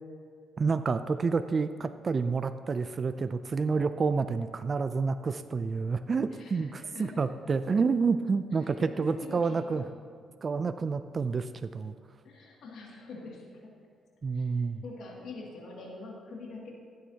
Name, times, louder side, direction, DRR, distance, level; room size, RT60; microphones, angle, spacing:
voice 1, 0.6-9.8 10.4-11.9 14.2-14.8, right 4 dB, 40° right, 11 dB, 0.3 m, -29 dB
voice 2, 6.3-7.3 8.6-9.9 12.2-13.7 14.3-14.5 14.8-16.7, left 3 dB, 70° left, -2 dB, 2.3 m, -45 dB
15.5 x 9.1 x 2.8 m, 2.2 s
cardioid pair, 90°, 0 cm